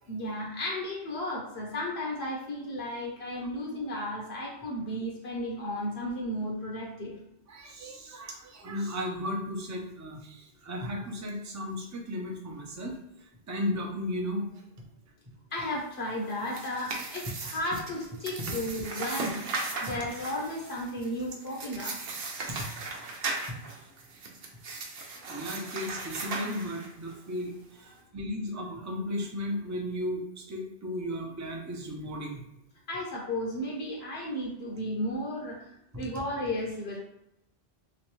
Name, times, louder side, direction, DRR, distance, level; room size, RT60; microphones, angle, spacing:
voice 1, 0.1-7.1 15.5-19.4 19.8-22.0 32.9-35.7 36.0-37.0, left 1 dB, 70° left, -4 dB, 1.0 m, -34 dB
voice 2, 7.5-14.6 18.4-18.5 19.8-19.9 22.6-22.7 23.5-23.6 25.3-32.4, left 1 dB, 25° right, 0 dB, 0.4 m, -35 dB
sound 1, 16.2-27.1, right 3 dB, 60° right, 0.8 m, -37 dB
3.2 x 3.0 x 3.0 m, 0.83 s
omnidirectional pair, 1.1 m